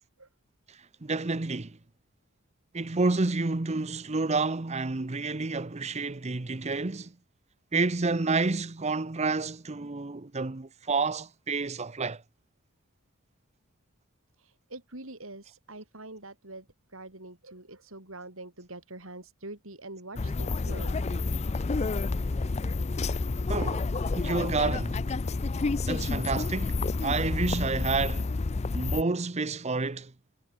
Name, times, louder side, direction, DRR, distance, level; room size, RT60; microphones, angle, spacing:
voice 1, 0.7-1.8 2.7-7.1 7.7-12.2 23.5-25.0 25.8-28.3 28.7-30.1, right 3 dB, 30° right, 0.8 m, -29 dB
voice 2, 14.4-21.0, right 2 dB, 65° right, 6.0 m, -44 dB
sound 1, 20.2-29.0, left 3 dB, 30° left, 0.5 m, -29 dB
head